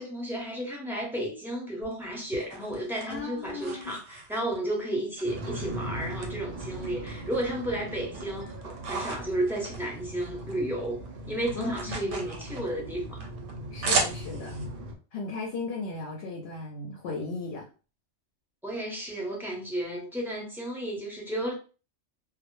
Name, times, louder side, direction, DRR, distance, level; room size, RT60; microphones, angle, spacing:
voice 1, 0.0-8.5 8.9-13.2 18.6-21.5, right 1 dB, 5° right, -2 dB, 0.5 m, -32 dB
sound 1, 1.8-4.7 5.2-6.3 6.6-7.6 8.0-10.6 10.8-14.7, right 4 dB, 80° right, 0.9 m, -35 dB
voice 2, 3.1-4.0 11.6-12.1 13.7-14.6 15.1-17.6, left 3 dB, 65° left, 1 dB, 0.7 m, -36 dB
sound 2, 5.2-14.9, right 1 dB, 60° right, 0.7 m, -39 dB
2.1 x 2.0 x 2.9 m, 0.35 s
omnidirectional pair, 1.2 m